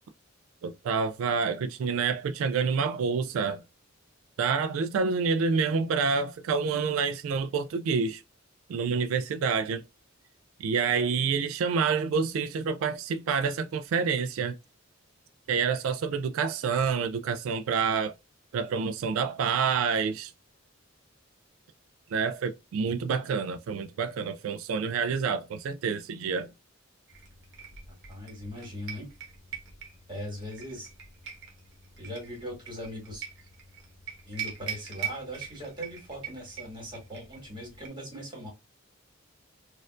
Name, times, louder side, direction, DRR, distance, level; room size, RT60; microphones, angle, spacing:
voice 1, 0.6-3.6 4.4-8.2 8.7-9.8 10.6-14.6 15.5-18.1 18.5-20.3 22.1-26.5, right 5 dB, 85° right, 0.3 m, -28 dB
sound 1, 27.1-37.9, right 8 dB, 60° right, 1.0 m, -42 dB
voice 2, 27.9-29.1 30.1-30.9 32.0-33.3 34.3-38.5, equal, 25° right, 1.9 m, -40 dB
4.2 x 2.5 x 2.4 m
head